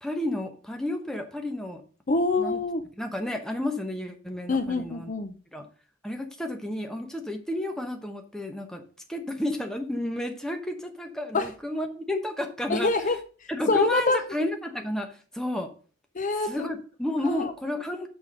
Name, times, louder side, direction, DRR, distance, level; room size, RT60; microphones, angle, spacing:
voice 1, 0.0-1.8 2.4-2.6 3.0-5.1 5.5-5.6 6.0-8.8 9.1-12.9 13.5-15.7 16.5-18.1, left 1 dB, 5° left, 4 dB, 0.9 m, -31 dB
voice 2, 2.1-2.9 4.5-5.3 11.3-11.5 12.7-14.2 16.1-16.7 17.2-17.5, left 3 dB, 40° left, 9 dB, 0.6 m, -26 dB
6.1 x 5.1 x 6.4 m, 0.39 s
head